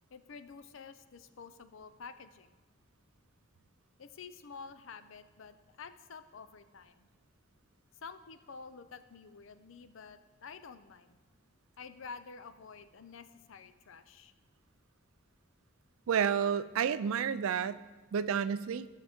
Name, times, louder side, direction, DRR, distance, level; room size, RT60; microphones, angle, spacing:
voice 1, 0.1-2.5 4.0-7.1 8.0-11.2 11.8-14.3, left 5 dB, 65° left, 12 dB, 0.5 m, -49 dB
voice 2, 16.1-17.8 18.1-18.9, right 7 dB, 75° right, 15 dB, 0.4 m, -30 dB
13.0 x 6.5 x 3.6 m, 1.3 s
head